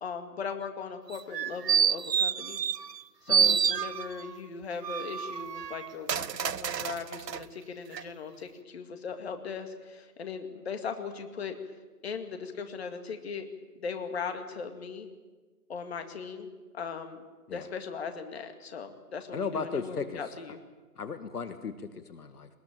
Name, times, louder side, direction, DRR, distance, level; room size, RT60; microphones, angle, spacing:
voice 1, 0.0-2.6 3.2-11.6 12.0-13.5 13.8-15.1 15.7-17.2 17.5-20.6, left 5 dB, 40° left, 7 dB, 2.2 m, -38 dB
sound 1, 1.1-3.0 3.3-4.3 4.8-7.4 7.9-8.0, right 7 dB, 85° right, 0.9 m, -28 dB
voice 2, 19.3-20.2 21.0-22.6, left 5 dB, 70° left, 10 dB, 1.8 m, -36 dB
21.0 x 20.5 x 8.9 m, 1.3 s
hypercardioid pair, 160°, 48 cm